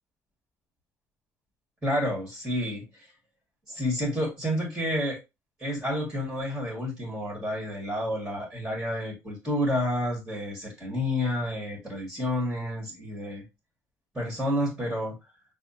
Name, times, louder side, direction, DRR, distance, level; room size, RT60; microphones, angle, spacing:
voice 1, 1.8-3.1 3.7-5.2 5.6-13.4 14.1-15.1, left 1 dB, 10° right, -3 dB, 1.8 m, -30 dB
6.0 x 2.1 x 2.9 m, 0.24 s
figure-of-eight pair, 50°, 8 cm